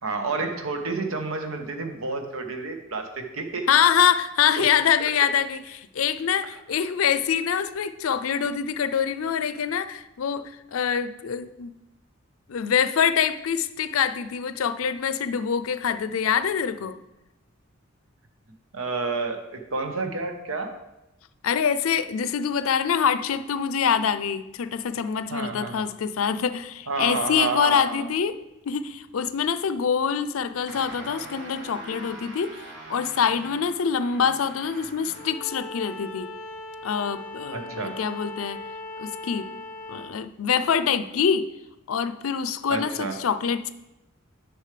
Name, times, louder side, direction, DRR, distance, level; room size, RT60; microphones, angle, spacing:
voice 1, 0.0-3.7 4.5-4.7 5.0-5.1 18.7-20.8 25.3-25.9 26.9-28.0 37.5-37.9 42.7-43.2, right 3 dB, 85° right, 5 dB, 1.0 m, -30 dB
voice 2, 3.7-10.4 10.7-11.7 12.5-17.0 21.4-28.4 28.7-32.6 32.9-36.3 36.8-38.6 39.0-39.5 39.9-41.5 41.9-43.7, left 7 dB, 90° left, 13 dB, 0.5 m, -25 dB
sound 1, 30.7-35.5, right 2 dB, 60° right, 1.3 m, -42 dB
Bowed string instrument, 35.1-40.2, left 2 dB, 40° left, 0.7 m, -39 dB
9.9 x 6.2 x 3.3 m, 0.94 s
head